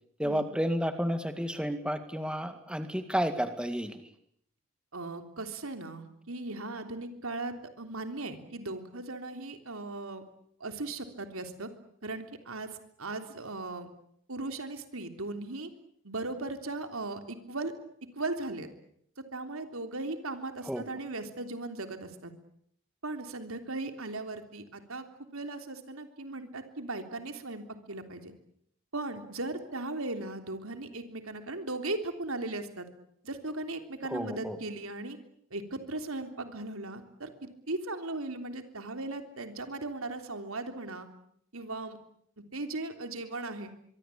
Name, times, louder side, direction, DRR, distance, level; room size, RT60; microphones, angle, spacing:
voice 1, 0.2-4.0 20.7-20.8 34.1-34.6, equal, 5° right, 8 dB, 2.0 m, -31 dB
voice 2, 4.9-10.2 10.6-11.7 12.0-13.9 14.3-15.7 16.0-17.7 18.1-18.7 19.2-22.3 23.0-25.0 25.3-28.3 28.9-32.9 33.2-35.2 35.5-41.1 41.5-42.0 42.4-43.7, right 2 dB, 80° right, 7 dB, 3.4 m, -38 dB
24.5 x 24.0 x 8.6 m, 0.70 s
head